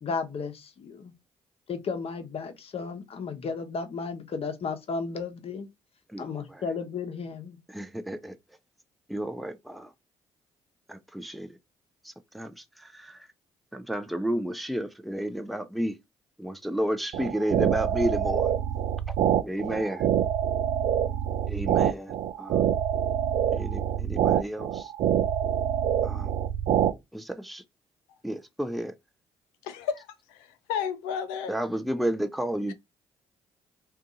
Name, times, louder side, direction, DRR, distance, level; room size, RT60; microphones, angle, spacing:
voice 1, 0.0-1.1 1.7-5.7 6.2-7.6, left 5 dB, 50° left, 0.9 m, -34 dB
voice 2, 6.1-6.6 7.7-8.4 9.1-9.9 10.9-11.5 12.0-13.3 13.7-16.0 16.4-18.5 19.4-20.1 21.5-22.7 23.5-24.9 26.0-26.3 27.1-27.6 28.2-28.9 31.5-32.7, right 1 dB, ahead, 0.5 m, -32 dB
sound 1, 17.1-26.9, right 9 dB, 65° right, 0.4 m, -25 dB
voice 3, 29.6-31.5, left 7 dB, 85° left, 0.5 m, -33 dB
2.6 x 2.4 x 3.8 m
hypercardioid pair, 50°, 13 cm